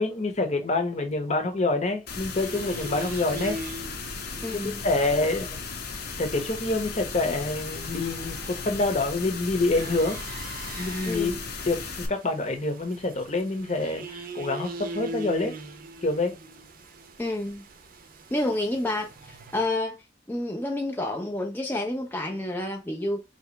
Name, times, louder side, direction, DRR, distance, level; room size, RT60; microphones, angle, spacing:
voice 1, 0.0-3.6 4.5-5.5 6.2-10.2 10.8-11.3 11.6-15.5 16.0-16.3, left 2 dB, 40° left, 1.0 m, -27 dB
sound 1, 2.1-12.1, left 4 dB, 60° left, 0.9 m, -36 dB
sound 2, 2.4-19.6, right 2 dB, 50° right, 0.6 m, -42 dB
voice 2, 4.4-4.9 5.1-5.4 11.0-11.4 17.2-17.6 18.3-23.2, left 1 dB, 10° left, 0.5 m, -30 dB
3.3 x 2.9 x 4.4 m
head